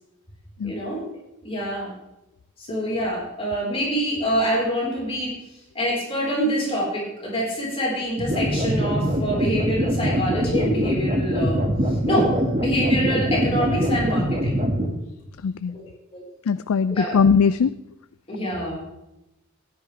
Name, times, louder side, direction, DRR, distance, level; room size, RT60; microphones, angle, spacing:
voice 1, 0.6-1.0 1.4-1.9 2.6-5.3 5.7-11.6 12.1-14.6 15.7-15.8 16.1-16.2 16.9-17.1 18.3-18.8, equal, 30° left, -4 dB, 4.4 m, -26 dB
sound 1, 8.2-14.9, equal, 30° right, 1.9 m, -23 dB
voice 2, 15.4-15.7 16.5-17.7, left 6 dB, 90° left, 14 dB, 0.4 m, -20 dB
16.5 x 10.5 x 3.4 m, 0.91 s
head